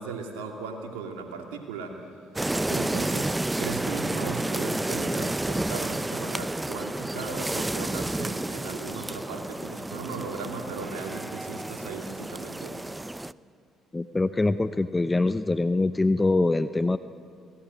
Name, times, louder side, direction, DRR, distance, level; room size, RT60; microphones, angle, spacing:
voice 1, 0.0-2.2 2.7-12.8, right 4 dB, 85° right, 2 dB, 2.5 m, -37 dB
sound 1, 2.4-13.3, right 2 dB, 15° right, 0.6 m, -30 dB
voice 2, 13.9-17.0, left 2 dB, 20° left, 12 dB, 0.8 m, -24 dB
26.0 x 18.0 x 9.4 m, 2.2 s
hypercardioid pair, 55°, 0 cm